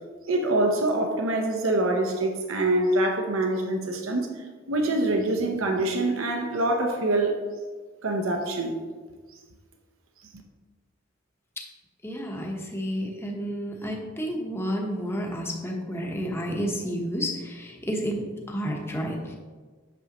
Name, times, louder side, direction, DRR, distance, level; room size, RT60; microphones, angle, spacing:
voice 1, 0.3-4.3 4.7-7.3 8.0-8.8, right 2 dB, 75° right, 3 dB, 0.8 m, -25 dB
voice 2, 12.0-19.4, equal, 10° left, 0 dB, 1.0 m, -31 dB
8.3 x 6.2 x 3.0 m, 1.4 s
head